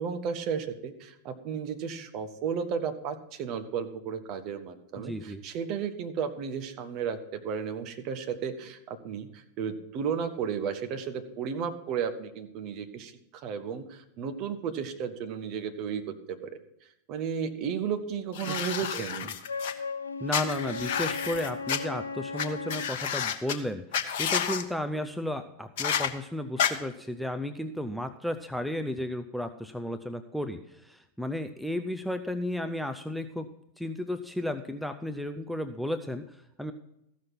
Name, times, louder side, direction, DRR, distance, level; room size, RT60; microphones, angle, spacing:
voice 1, 0.0-16.5 17.1-19.3, right 7 dB, 40° right, 7 dB, 1.1 m, -34 dB
voice 2, 5.0-5.4 18.5-18.6 18.9-19.0 20.2-33.5 33.8-36.7, left 1 dB, ahead, 8 dB, 0.5 m, -34 dB
sound 1, 18.3-19.7 20.3-21.8 22.4-22.5 22.7-23.5 23.9-24.6 25.8-26.1 26.6-26.7, left 8 dB, 55° left, 0.9 m, -30 dB
Wind instrument woodwind instrument, 19.4-23.0, left 4 dB, 75° left, 0.4 m, -36 dB
14.5 x 6.3 x 5.7 m, 0.83 s
figure-of-eight pair, 90°, 0 cm